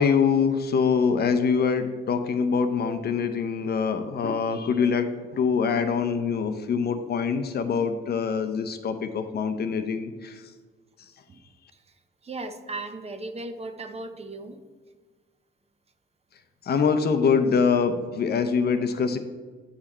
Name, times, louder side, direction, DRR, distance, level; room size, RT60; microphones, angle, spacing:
voice 1, 0.0-10.4 16.7-19.2, left 6 dB, 55° left, 8 dB, 0.7 m, -24 dB
voice 2, 12.2-14.6, right 2 dB, 30° right, 8 dB, 0.7 m, -36 dB
8.2 x 5.0 x 4.3 m, 1.4 s
cardioid pair, 90°, 20 cm